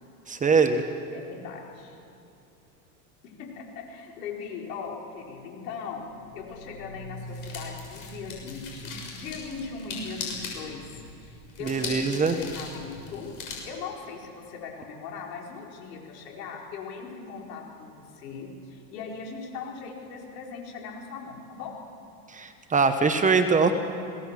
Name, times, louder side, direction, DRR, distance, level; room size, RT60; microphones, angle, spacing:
voice 1, 0.3-0.8 11.6-12.4 22.3-23.7, right 5 dB, 15° right, 8 dB, 0.9 m, -22 dB
voice 2, 1.1-2.0 3.2-6.1 6.3-21.8, left 5 dB, 80° left, -1 dB, 5.0 m, -39 dB
sound 1, 6.1-13.5, left 4 dB, 40° left, 6.3 m, -40 dB
21.5 x 17.5 x 7.5 m, 2.8 s
supercardioid pair, 135°, 49 cm